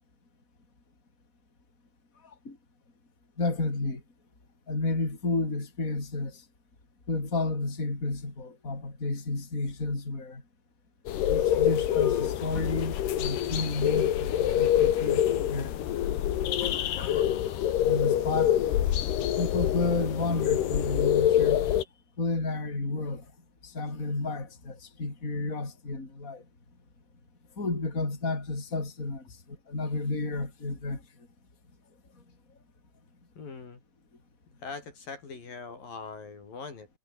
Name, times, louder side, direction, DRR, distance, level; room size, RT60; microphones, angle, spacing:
voice 1, 2.2-2.6 3.4-4.0 4.7-6.4 7.1-10.4 11.3-15.2 15.5-15.8 16.3-18.6 19.4-21.7 22.2-23.3 23.6-26.4 27.6-31.0, left 3 dB, 20° left, 5.2 m, -32 dB
sound 1, 11.1-21.8, left 11 dB, 80° left, 4.0 m, -26 dB
voice 2, 33.4-33.8 34.6-36.9, left 4 dB, 60° left, 6.7 m, -41 dB
omnidirectional pair, 4.6 m